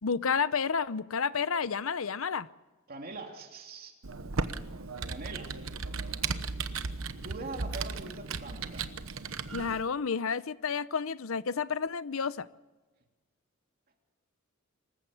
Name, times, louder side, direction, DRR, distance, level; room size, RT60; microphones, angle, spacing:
voice 1, 0.0-2.5 9.5-12.5, left 6 dB, 80° left, 0.7 m, -30 dB
voice 2, 2.9-3.9 5.1-5.6 7.2-8.9, right 3 dB, 45° right, 2.9 m, -42 dB
Computer keyboard, 4.0-9.8, right 4 dB, 75° right, 1.1 m, -36 dB
26.0 x 15.0 x 7.1 m
head